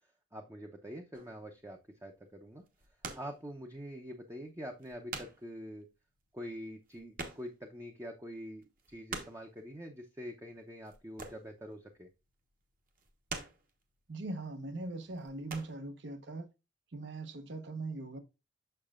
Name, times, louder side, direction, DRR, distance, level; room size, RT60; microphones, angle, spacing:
voice 1, 0.3-2.6 3.1-5.9 6.3-12.1, equal, 15° right, 0.6 m, -45 dB
sound 1, 1.1-1.5 2.6-3.4 3.8-3.9 4.5-4.6 4.7-5.5 5.8-5.9 6.2-6.3 6.5-7.8 8.1-8.2 8.6-9.5 10.8-11.6 11.9-12.3 12.9-13.8 14.4-14.7 15.0-15.8, right 3 dB, 50° right, 1.2 m, -44 dB
voice 2, 14.1-16.5 16.9-18.2, right 2 dB, 65° right, 0.9 m, -40 dB
6.7 x 6.4 x 2.4 m
head